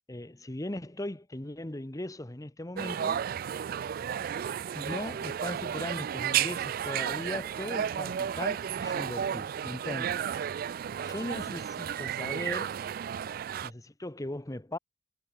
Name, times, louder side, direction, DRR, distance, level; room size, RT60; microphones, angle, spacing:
voice 1, 0.1-3.3 4.7-10.3 11.0-12.7 13.6-14.8, left 1 dB, 20° left, 0.9 m, -38 dB
sound 1, 2.8-13.7, right 9 dB, 55° right, 0.3 m, -33 dB
head